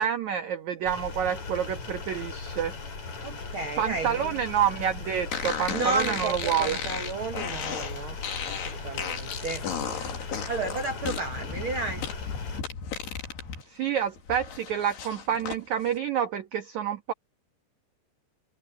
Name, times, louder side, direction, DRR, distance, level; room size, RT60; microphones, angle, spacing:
voice 1, 0.0-2.7 3.8-6.8 13.7-17.1, right 9 dB, 60° right, 2.3 m, -28 dB
sound 1, 0.8-12.6, left 4 dB, 45° left, 5.8 m, -38 dB
voice 2, 3.2-4.3 5.7-9.7 10.5-12.0, right 3 dB, 75° right, 1.2 m, -33 dB
sound 2, 5.3-13.6 14.0-15.6, left 7 dB, 75° left, 5.4 m, -35 dB
omnidirectional pair, 4.7 m